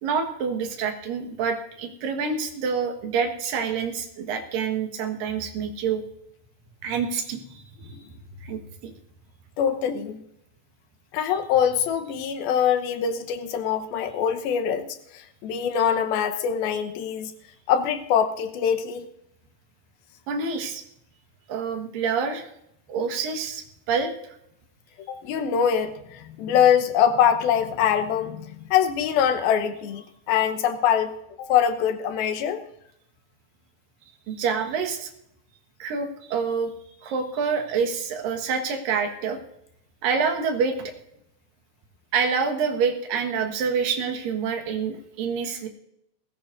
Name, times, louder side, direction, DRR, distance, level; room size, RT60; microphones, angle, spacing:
voice 1, 0.0-6.0 6.8-7.7 8.4-8.9 20.3-20.8 21.5-22.5 22.9-24.1 34.3-35.1 35.8-36.7 37.0-39.4 40.0-40.8 42.1-45.7, right 5 dB, 70° right, 4 dB, 3.2 m, -27 dB
voice 2, 9.6-10.2 11.1-14.9 15.1-17.3 17.7-19.1 25.1-32.6, left 8 dB, 85° left, 8 dB, 3.0 m, -23 dB
20.0 x 15.5 x 2.6 m, 0.77 s
omnidirectional pair, 4.2 m